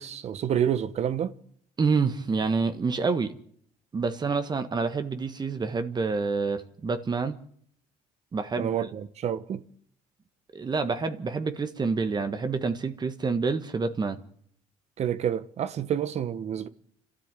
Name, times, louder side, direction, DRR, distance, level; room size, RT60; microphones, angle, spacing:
voice 1, 0.0-1.3 8.6-9.6 15.0-16.7, right 9 dB, 55° right, 1.3 m, -28 dB
voice 2, 1.8-3.3 3.9-7.4 8.3-8.7 10.5-14.2, right 4 dB, 30° right, 1.5 m, -27 dB
28.5 x 13.0 x 9.2 m
supercardioid pair, 90°, 14 cm